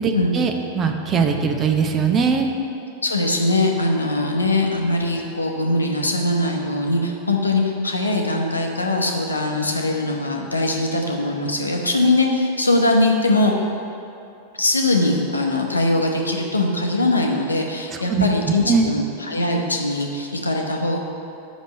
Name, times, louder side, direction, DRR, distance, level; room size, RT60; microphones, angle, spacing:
voice 1, 0.0-2.5 18.1-18.3 18.7-18.9, right 5 dB, 25° right, 4 dB, 0.7 m, -20 dB
voice 2, 3.0-13.5 14.6-21.0, left 2 dB, 80° left, 1 dB, 0.8 m, -21 dB
6.2 x 5.2 x 6.4 m, 2.7 s
figure-of-eight pair, 90°, 0 cm